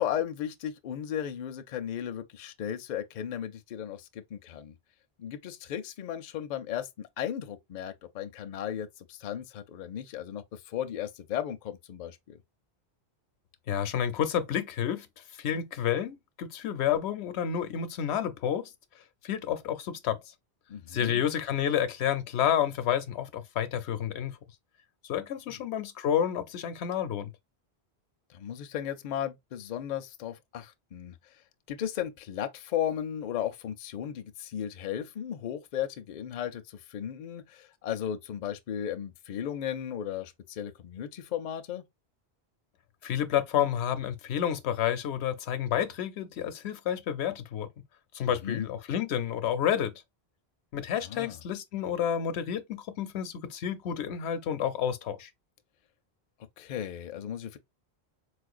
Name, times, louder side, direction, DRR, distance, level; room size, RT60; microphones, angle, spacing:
voice 1, 0.0-4.8 5.2-12.4 20.7-21.2 25.5-25.6 28.3-31.2 31.7-41.8 48.4-48.7 51.0-51.4 56.6-57.6, left 10 dB, 55° left, 0.5 m, -35 dB
voice 2, 13.7-15.1 15.4-18.7 19.2-20.2 20.9-24.4 25.0-27.3 43.0-47.7 48.1-49.9 50.7-55.3, left 9 dB, 80° left, 0.9 m, -30 dB
4.3 x 2.4 x 2.4 m
omnidirectional pair, 1.1 m